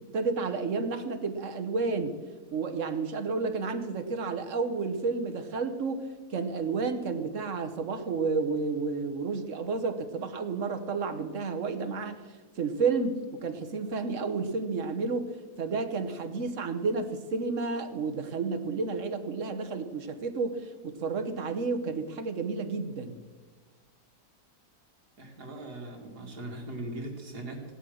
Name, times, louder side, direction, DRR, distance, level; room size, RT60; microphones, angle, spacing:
voice 1, 0.1-2.1 2.5-12.2 12.6-23.2, right 4 dB, 55° right, 7 dB, 1.3 m, -31 dB
voice 2, 25.2-27.6, right 1 dB, 75° right, 1 dB, 2.9 m, -39 dB
16.0 x 11.0 x 6.3 m, 1.4 s
omnidirectional pair, 1.7 m